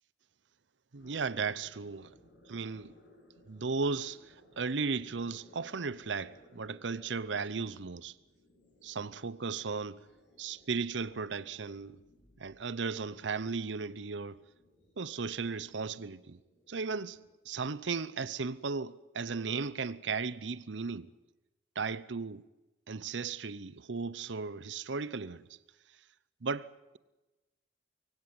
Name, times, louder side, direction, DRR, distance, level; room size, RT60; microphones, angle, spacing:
voice 1, 0.9-2.1 2.5-2.9 3.5-8.1 8.8-10.0 10.4-12.0 12.4-14.4 15.0-16.4 16.7-21.1 21.8-22.4 22.9-25.5 26.4-27.0, right 4 dB, 85° right, 0.8 m, -36 dB
sound 1, 1.0-17.3, left 1 dB, 70° left, 7.7 m, -62 dB
23.5 x 16.5 x 9.5 m
head